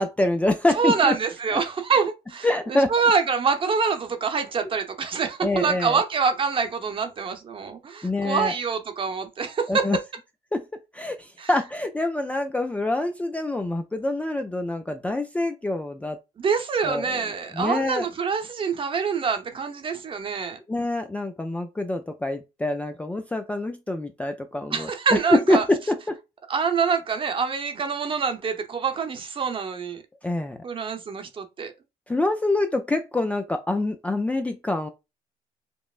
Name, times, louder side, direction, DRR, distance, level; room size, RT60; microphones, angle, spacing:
voice 1, 0.0-1.1 1.5-1.6 2.4-2.9 5.4-6.0 8.0-8.5 9.7-10.0 10.5-10.6 10.9-16.2 16.8-17.2 17.5-18.1 20.7-24.9 25.3-26.1 30.2-30.6 32.1-34.9, left 2 dB, 10° left, 0.4 m, -25 dB
voice 2, 0.7-9.9 11.4-11.5 16.4-20.6 24.7-25.6 26.5-30.0 30.6-31.7, right 5 dB, 35° right, 0.8 m, -25 dB
5.2 x 2.0 x 2.4 m
supercardioid pair, 95°, 16 cm